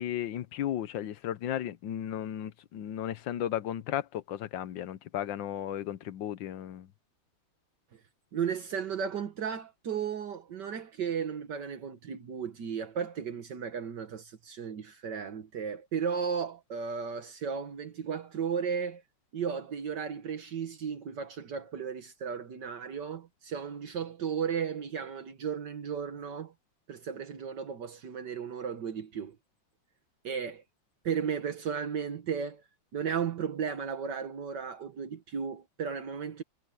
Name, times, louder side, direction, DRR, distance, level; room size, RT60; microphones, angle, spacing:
voice 1, 0.0-6.9, left 11 dB, 85° left, 1.6 m, -35 dB
voice 2, 8.3-19.0 19.3-26.5 26.9-29.4 30.2-30.6 31.0-32.6 32.9-36.4, right 7 dB, 70° right, 1.9 m, -35 dB
omnidirectional pair, 2.0 m